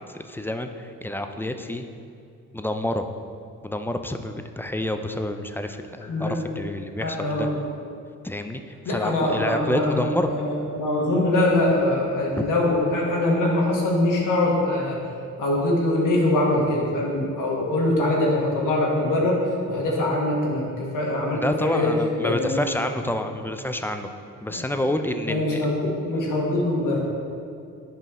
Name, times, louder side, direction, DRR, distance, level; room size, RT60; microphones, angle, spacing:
voice 1, 0.2-1.9 2.5-3.1 3.6-7.5 8.2-10.3 21.3-24.1 24.4-25.6, left 1 dB, 5° left, 7 dB, 0.4 m, -28 dB
voice 2, 7.0-7.5 8.8-15.0 15.4-19.4 19.7-21.9 22.2-22.5 24.5-24.6 25.3-27.0, left 1 dB, 75° left, -3 dB, 1.5 m, -23 dB
7.9 x 5.4 x 3.6 m, 2.5 s
cardioid pair, 75°, 32 cm